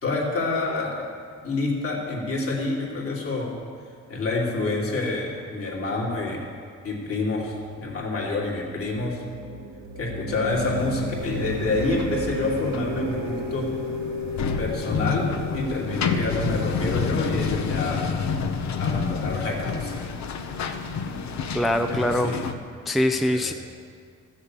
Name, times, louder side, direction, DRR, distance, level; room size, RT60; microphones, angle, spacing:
voice 1, 0.0-1.1 1.4-3.6 4.1-6.4 6.8-9.2 10.0-13.7 14.6-18.1 18.8-20.0 21.9-22.5 23.1-23.2 23.5-23.6, left 3 dB, 50° left, -3 dB, 3.0 m, -28 dB
sound 1, 7.5-17.7, equal, 90° right, 1.5 m, -34 dB
sound 2, 10.5-22.5, left 5 dB, 65° left, 1.0 m, -29 dB
voice 2, 21.5-22.3 22.9-23.5, left 1 dB, ahead, 6 dB, 0.5 m, -23 dB
14.0 x 7.4 x 7.4 m, 2.2 s
cardioid pair, 90°, 30 cm